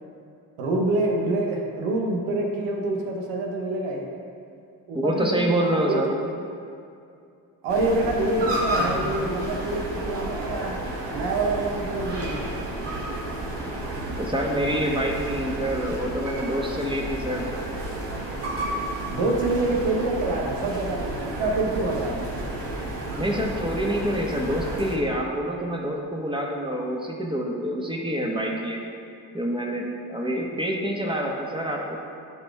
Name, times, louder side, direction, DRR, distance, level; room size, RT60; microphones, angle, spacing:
voice 1, 0.6-4.1 4.9-6.0 7.6-10.8 11.1-12.5 19.1-22.3, right 2 dB, 80° right, 0 dB, 1.1 m, -26 dB
voice 2, 4.9-6.1 14.2-17.5 23.2-28.8 29.3-32.0, equal, 10° right, -1 dB, 1.5 m, -26 dB
sound 1, 7.7-25.0, right 1 dB, 60° right, 1.7 m, -31 dB
11.0 x 4.1 x 3.6 m, 2.5 s
hypercardioid pair, 40°, 47 cm